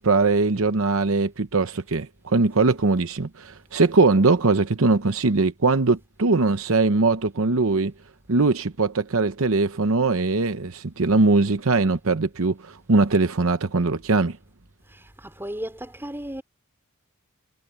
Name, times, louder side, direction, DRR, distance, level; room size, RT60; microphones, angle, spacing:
voice 1, 0.0-7.9 8.3-14.4, right 3 dB, 65° right, 0.9 m, -21 dB
voice 2, 14.9-16.4, right 1 dB, 10° right, 4.7 m, -35 dB
head